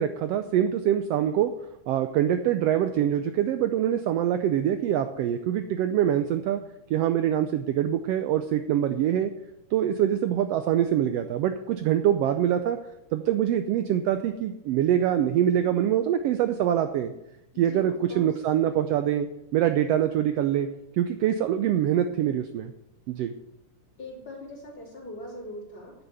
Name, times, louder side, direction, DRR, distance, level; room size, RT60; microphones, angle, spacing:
voice 1, 0.0-1.5 1.9-6.6 6.9-9.3 9.7-12.8 13.1-17.1 17.6-19.3 19.5-20.7 20.9-22.7 23.1-23.3, right 10 dB, 85° right, 9 dB, 1.4 m, -24 dB
voice 2, 17.5-18.3 24.0-25.9, left 1 dB, 40° left, -3 dB, 3.9 m, -41 dB
9.5 x 7.0 x 9.1 m, 0.89 s
omnidirectional pair, 3.5 m